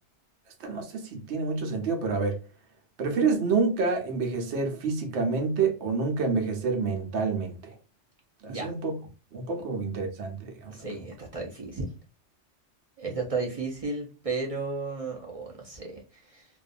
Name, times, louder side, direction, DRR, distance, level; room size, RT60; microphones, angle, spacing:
voice 1, 0.6-2.4 3.0-7.7 8.4-9.0 9.3-10.7, right 4 dB, 70° right, 1.0 m, -28 dB
voice 2, 10.7-11.9 13.0-16.5, right 3 dB, 40° right, 0.5 m, -34 dB
2.5 x 2.2 x 2.5 m
omnidirectional pair, 1.2 m